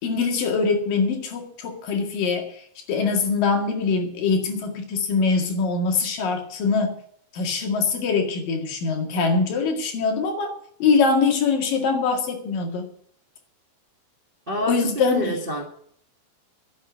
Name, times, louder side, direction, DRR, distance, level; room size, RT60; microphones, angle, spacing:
voice 1, 0.0-7.0 7.3-12.9 14.6-15.4, left 4 dB, 90° left, 3 dB, 3.8 m, -23 dB
voice 2, 14.5-15.7, equal, 75° right, 2 dB, 0.5 m, -28 dB
11.0 x 8.1 x 9.2 m, 0.64 s
omnidirectional pair, 3.8 m